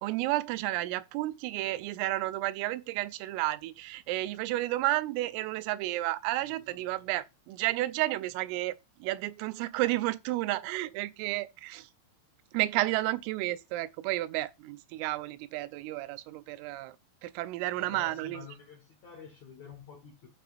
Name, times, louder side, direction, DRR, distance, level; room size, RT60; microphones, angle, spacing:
voice 1, 0.0-8.8 9.0-11.9 12.5-17.0 17.2-18.5, right 17 dB, 90° right, 3.3 m, -32 dB
voice 2, 17.8-20.3, left 6 dB, 70° left, 1.7 m, -49 dB
13.5 x 7.4 x 2.5 m
omnidirectional pair, 5.7 m